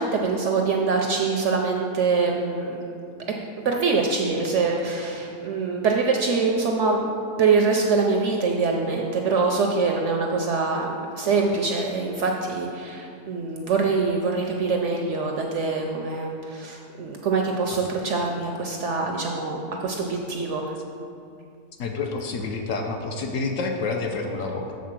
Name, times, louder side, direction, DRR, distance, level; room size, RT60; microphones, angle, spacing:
voice 1, 0.0-2.8 3.6-7.1 7.4-20.7, right 4 dB, 65° right, 1 dB, 0.7 m, -24 dB
voice 2, 21.8-24.8, left 3 dB, 65° left, 3 dB, 0.9 m, -28 dB
7.4 x 4.0 x 6.0 m, 2.4 s
omnidirectional pair, 1.7 m